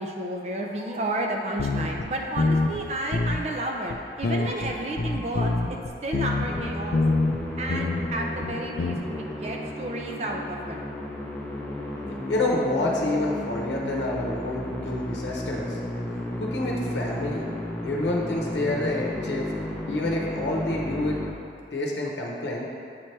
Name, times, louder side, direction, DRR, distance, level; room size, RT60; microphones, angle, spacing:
voice 1, 0.0-7.0 7.6-10.9 11.3-12.2, right 1 dB, 40° right, 1 dB, 0.5 m, -32 dB
sound 1, 1.6-2.1 2.4-2.8 3.1-3.4 3.9-4.0 4.2-6.6 6.9-7.4 7.7-8.1 8.4-9.0, left 3 dB, 70° left, 0.4 m, -25 dB
Musical instrument, 6.5-21.3, left 1 dB, 10° left, 0.6 m, -33 dB
voice 2, 12.3-15.8 16.4-17.5 17.8-19.5 19.9-21.2 21.7-22.7, left 2 dB, 85° left, -2 dB, 0.8 m, -28 dB
8.5 x 3.3 x 4.4 m, 2.5 s
head